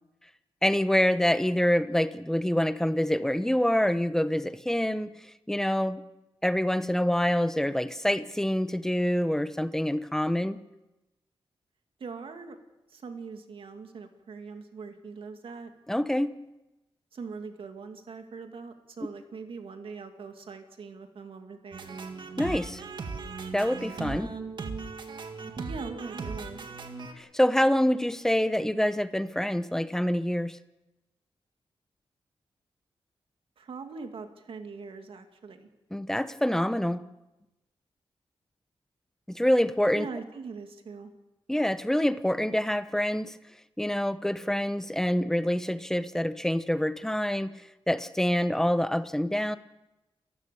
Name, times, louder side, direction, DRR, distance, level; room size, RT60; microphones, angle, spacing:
voice 1, 0.6-5.2 5.5-6.0 6.4-10.6 15.9-16.3 22.4-22.8 23.5-24.3 27.2-30.6 35.9-37.0 39.3-40.1 41.5-43.4 43.8-47.5 47.9-49.6, equal, 5° left, 13 dB, 0.7 m, -26 dB
voice 2, 12.0-12.6 12.9-15.7 17.1-22.0 25.7-26.7 33.6-35.7 39.9-41.1, right 4 dB, 70° right, 6 dB, 2.3 m, -42 dB
sound 1, 21.7-27.1, right 4 dB, 55° right, 2.0 m, -38 dB
29.0 x 15.0 x 6.9 m, 0.97 s
wide cardioid pair, 165°, 10 cm